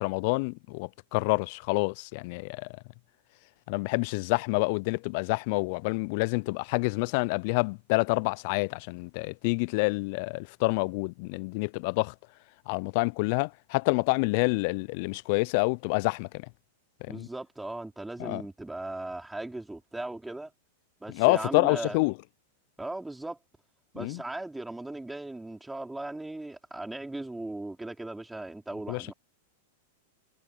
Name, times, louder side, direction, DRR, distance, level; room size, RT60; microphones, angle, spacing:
voice 1, 0.0-2.6 3.7-12.1 12.7-16.3 17.1-17.3 18.2-18.4 21.1-22.1 24.0-24.2 28.9-29.0, left 29 dB, 55° left, 0.5 m, -27 dB
voice 2, 17.1-20.5 21.0-22.0 22.8-23.4 23.9-29.1, right 2 dB, 5° right, 4.0 m, -38 dB
hypercardioid pair, 105°, 0 cm